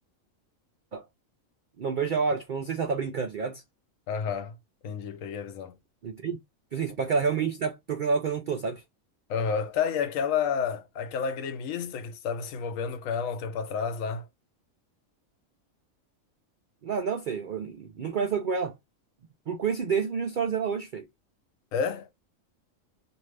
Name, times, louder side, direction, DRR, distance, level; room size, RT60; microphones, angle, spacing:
voice 1, 1.8-3.6 6.0-6.4 6.7-8.8 16.8-18.8 19.5-21.1, right 5 dB, 70° right, 0.4 m, -29 dB
voice 2, 4.1-4.6 4.8-5.7 9.3-14.3 21.7-22.1, left 6 dB, 75° left, 1.0 m, -30 dB
2.6 x 2.6 x 3.2 m
omnidirectional pair, 1.4 m